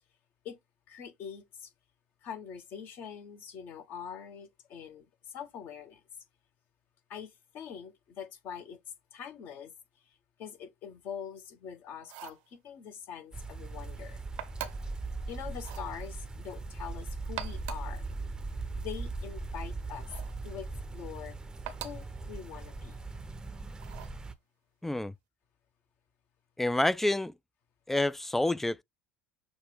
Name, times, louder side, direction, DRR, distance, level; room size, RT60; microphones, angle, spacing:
voice 1, 0.9-1.7 2.2-6.0 7.1-8.8 9.1-9.7 10.4-14.2 15.3-18.1 18.8-20.1 20.4-21.4 21.8-23.0, left 8 dB, 45° left, 1.2 m, -44 dB
sound 1, 12.0-12.5 14.4-15.0 15.6-15.9 17.2-18.0 20.0-20.4 21.7-22.1 23.8-24.2, right 11 dB, 60° right, 0.7 m, -42 dB
sound 2, 13.3-24.3, right 3 dB, 15° right, 0.7 m, -39 dB
voice 2, 24.8-25.1 26.6-27.3 27.9-28.8, left 1 dB, 5° left, 0.3 m, -28 dB
6.1 x 2.4 x 3.4 m
figure-of-eight pair, 70°, 4 cm